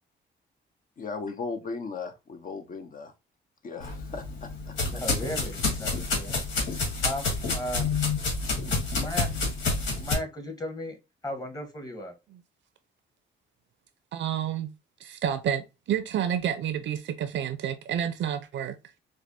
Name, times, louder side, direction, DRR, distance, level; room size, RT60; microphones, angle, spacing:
voice 1, 1.0-3.1 3.6-4.7, left 4 dB, 45° left, 0.7 m, -37 dB
sound 1, 3.8-10.1, left 3 dB, 85° left, 1.5 m, -29 dB
voice 2, 4.9-6.4 7.0-7.9 8.6-9.3 9.8-11.0 11.2-12.1, left 1 dB, 20° left, 1.2 m, -36 dB
voice 3, 14.1-14.7 15.0-18.8, right 9 dB, 70° right, 0.6 m, -29 dB
4.7 x 2.1 x 2.6 m
cardioid pair, 90°, 20 cm